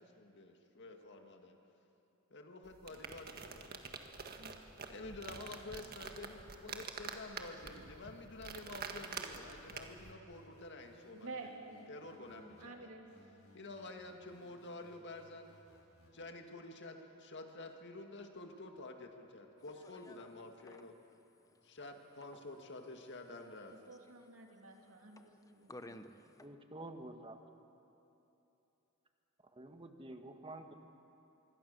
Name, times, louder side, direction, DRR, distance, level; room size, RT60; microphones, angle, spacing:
voice 1, 0.0-1.6 2.3-3.8 4.9-11.4 11.9-12.9 13.5-15.5 16.1-21.0 21.6-23.8, left 2 dB, 60° left, 4 dB, 2.1 m, -50 dB
sound 1, 2.6-10.1, right 5 dB, 45° right, 1.6 m, -47 dB
sound 2, 9.6-12.7 13.1-16.1, left 1 dB, 80° left, 4.7 m, -64 dB
voice 2, 11.1-13.1 23.9-25.9, right 3 dB, 75° right, 2 dB, 3.0 m, -51 dB
sound 3, 19.6-26.5, left 1 dB, 15° left, 0.9 m, -58 dB
voice 3, 26.2-27.4 29.4-30.7, right 2 dB, 25° right, 6 dB, 1.6 m, -49 dB
26.0 x 23.0 x 6.8 m, 3.0 s
head